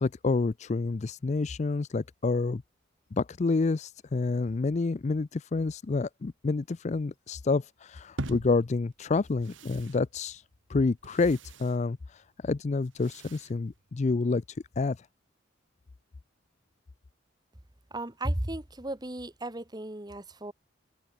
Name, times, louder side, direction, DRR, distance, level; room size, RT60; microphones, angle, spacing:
voice 1, 0.0-2.6 3.1-10.4 10.7-12.0 12.4-14.4 14.8-15.0, left 3 dB, 35° left, 0.4 m, -28 dB
sound 1, 8.2-14.4, right 2 dB, 85° right, 1.9 m, -45 dB
voice 2, 17.9-20.5, right 1 dB, 20° right, 1.7 m, -34 dB
head